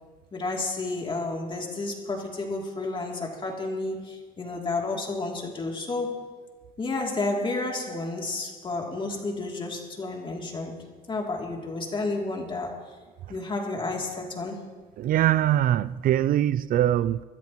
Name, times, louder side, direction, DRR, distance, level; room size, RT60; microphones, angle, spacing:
voice 1, 0.3-6.4 6.8-13.0 13.3-14.7, left 3 dB, 30° left, 2.8 m, -31 dB
voice 2, 15.0-17.2, right 12 dB, 55° right, 0.4 m, -22 dB
25.5 x 13.0 x 3.0 m
cardioid pair, 110°, 17 cm